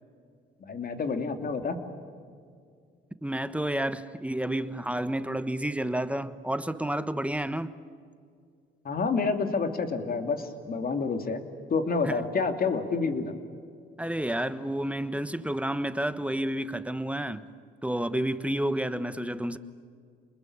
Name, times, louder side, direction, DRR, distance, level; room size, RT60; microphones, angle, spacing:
voice 1, 0.6-1.8 8.8-11.4 11.7-13.3, left 4 dB, 50° left, 6 dB, 2.9 m, -28 dB
voice 2, 3.2-7.7 12.1-12.2 14.0-17.4 17.8-19.6, right 1 dB, 5° right, 12 dB, 1.2 m, -30 dB
28.5 x 21.0 x 8.8 m, 2.2 s
cardioid pair, 90°, 20 cm